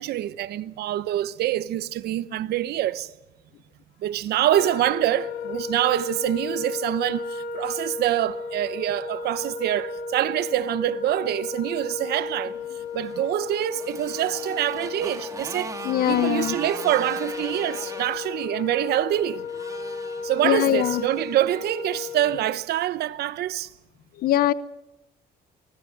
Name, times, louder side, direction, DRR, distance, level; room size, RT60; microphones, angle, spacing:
voice 1, 0.0-3.1 4.0-12.5 12.9-19.5 20.2-23.7, right 13 dB, 70° right, 1.0 m, -25 dB
Wind instrument woodwind instrument, 4.5-22.6, left 5 dB, 80° left, 4.8 m, -34 dB
Motorcycle, 12.7-22.1, right 3 dB, 20° right, 2.5 m, -41 dB
voice 2, 15.8-16.6 20.4-21.0 24.1-24.5, left 12 dB, 60° left, 0.7 m, -22 dB
24.5 x 20.5 x 6.4 m
cardioid pair, 110°, 17 cm